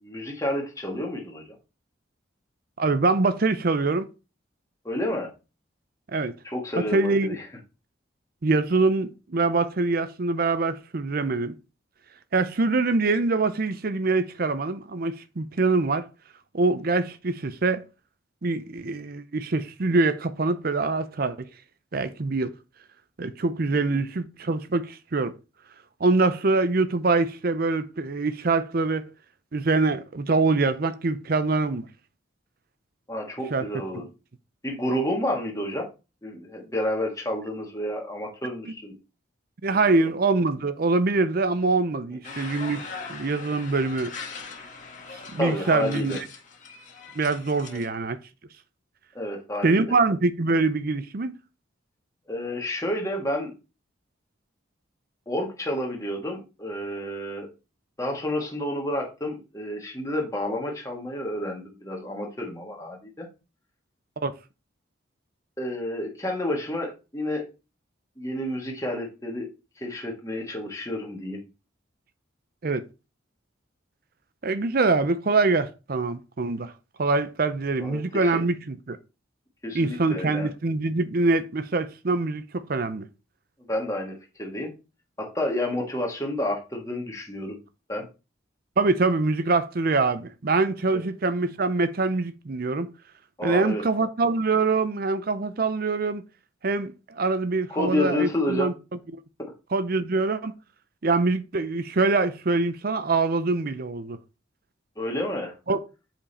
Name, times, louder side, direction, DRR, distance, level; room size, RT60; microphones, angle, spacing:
voice 1, 0.0-1.4 4.8-5.3 6.4-7.4 23.9-24.0 33.1-34.0 34.6-35.9 36.2-39.0 39.7-40.1 42.2-42.4 45.4-46.2 47.7-47.8 49.1-49.8 52.3-53.5 55.3-57.5 58.0-63.3 65.6-67.5 68.2-69.5 69.8-71.4 77.8-78.4 79.6-80.5 83.7-84.7 85.2-87.6 87.9-88.1 90.9-91.0 93.4-93.8 97.7-98.7 99.4-99.5 105.0-105.5, left 1 dB, 15° left, 1.8 m, -30 dB
voice 2, 2.8-4.1 6.1-6.3 6.9-7.4 8.4-11.5 12.3-16.1 16.5-17.8 18.4-21.5 21.9-22.5 23.2-25.3 26.0-29.0 29.5-31.9 33.5-33.7 33.9-34.1 39.6-42.8 43.1-44.1 45.3-46.2 47.2-48.2 49.6-51.3 64.2-64.3 72.6-72.8 74.4-76.7 77.0-79.0 79.7-83.1 88.8-92.9 93.4-96.2 96.6-98.7 99.7-100.5 101.0-104.2 105.7-105.8, right 3 dB, 50° right, 0.6 m, -24 dB
sound 1, 42.2-47.9, left 4 dB, 40° left, 1.7 m, -40 dB
7.3 x 5.3 x 4.2 m
head